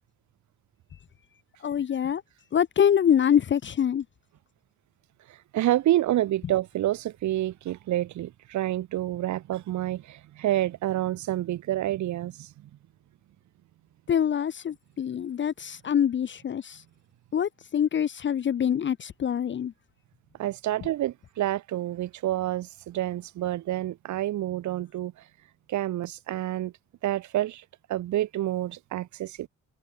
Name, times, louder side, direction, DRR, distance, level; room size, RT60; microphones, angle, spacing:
voice 1, 1.6-2.2 2.5-4.0 14.1-16.8 17.3-19.7, left 9 dB, 40° left, 0.6 m, -25 dB
voice 2, 5.3-12.7 20.4-25.1 25.7-26.7 27.0-27.6 27.9-29.5, right 13 dB, 70° right, 1.0 m, -28 dB
cardioid pair, 90°, 30 cm